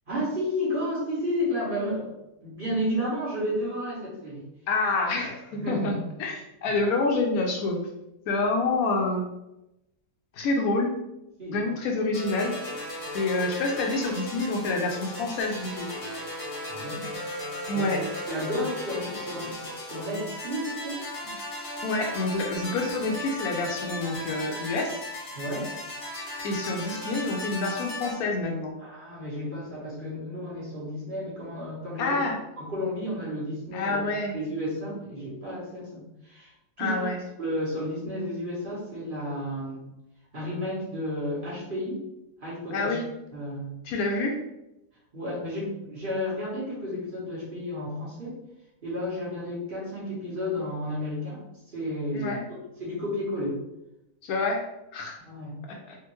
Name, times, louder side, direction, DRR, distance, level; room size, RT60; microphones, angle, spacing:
voice 1, 0.1-2.1 2.4-4.4 5.5-6.0 11.4-11.6 16.6-17.1 17.7-19.5 19.8-21.3 25.3-25.7 28.8-32.2 32.6-34.0 34.3-36.5 36.8-37.1 37.4-39.8 40.3-42.0 42.4-43.0 43.3-43.8 45.1-48.4 48.8-51.4 51.7-52.4 52.8-53.6 55.2-55.6, left 1 dB, 40° right, -7 dB, 1.1 m, -32 dB
voice 2, 4.7-7.8 8.3-9.3 10.3-10.9 11.5-12.6 13.1-15.9 17.7-18.0 21.8-25.0 26.4-28.8 32.0-32.4 33.7-34.4 36.8-37.2 42.7-43.1 43.8-44.4 52.1-52.4 54.2-55.2 55.7-56.0, left 2 dB, 75° left, 1 dB, 1.0 m, -27 dB
sound 1, 12.1-28.1, left 1 dB, 40° left, 0.9 m, -36 dB
3.5 x 2.5 x 3.0 m, 0.91 s
omnidirectional pair, 1.7 m